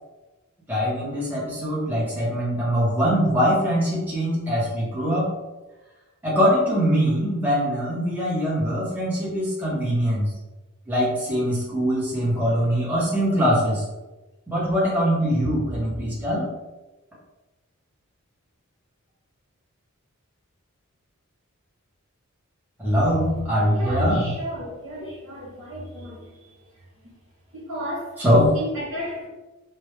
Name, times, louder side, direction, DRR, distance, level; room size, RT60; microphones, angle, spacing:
voice 1, 0.7-5.3 6.2-10.3 10.9-13.8 14.5-16.5 22.8-24.3 25.0-25.1 28.2-28.5, equal, 10° right, -8 dB, 1.0 m, -22 dB
voice 2, 22.9-23.4 23.8-26.5 27.5-28.1 28.5-29.3, right 1 dB, 75° right, -10 dB, 1.3 m, -32 dB
3.4 x 2.2 x 3.2 m, 1.1 s
head